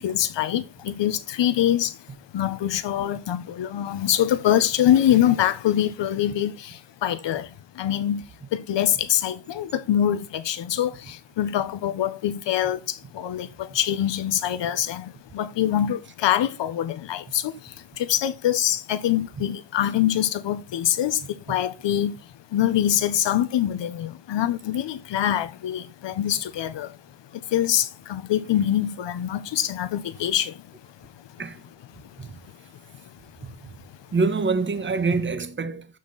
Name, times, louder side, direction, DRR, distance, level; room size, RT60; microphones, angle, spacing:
voice 1, 0.0-2.0 2.3-7.5 7.7-8.2 8.5-22.1 22.5-26.9 27.3-30.6, left 11 dB, 70° left, 1.4 m, -24 dB
voice 2, 34.1-35.9, right 4 dB, 25° right, 1.3 m, -25 dB
13.0 x 6.0 x 4.2 m
cardioid pair, 140°, 45 cm